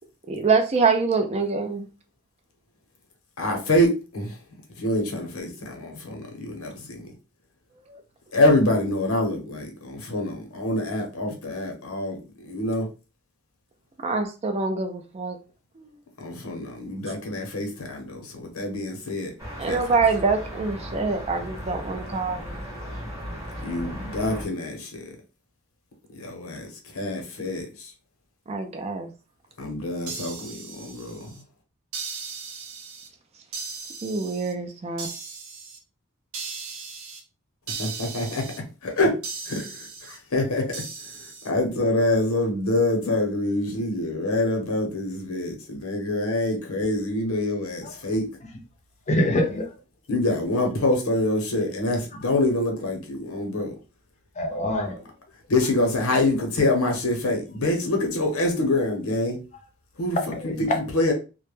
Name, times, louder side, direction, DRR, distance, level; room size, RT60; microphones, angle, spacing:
voice 1, 0.3-1.9 7.9-8.0 14.0-15.4 15.8-15.9 19.6-22.6 28.5-29.1 34.0-35.1, right 4 dB, 30° right, 0.4 m, -25 dB
voice 2, 3.4-4.3 4.8-7.1 8.3-12.9 16.2-19.3 19.7-19.8 23.6-25.1 26.1-26.7 26.9-27.9 29.6-31.3 37.8-38.5 38.8-39.2 39.5-40.7 41.4-48.2 50.1-53.7 55.5-59.4 60.0-60.2 60.4-60.7 60.9-61.1, left 1 dB, 90° left, 0.8 m, -25 dB
sound 1, 19.4-24.4, equal, 15° right, 0.9 m, -36 dB
sound 2, 30.1-31.4 31.9-33.1 33.5-34.5 35.0-35.8 36.3-37.2 37.7-38.6 39.2-40.2 40.7-41.5, right 5 dB, 75° right, 0.6 m, -37 dB
voice 3, 49.1-49.7 54.4-55.1 60.1-60.8, left 1 dB, 35° left, 0.5 m, -25 dB
2.2 x 2.1 x 3.1 m
head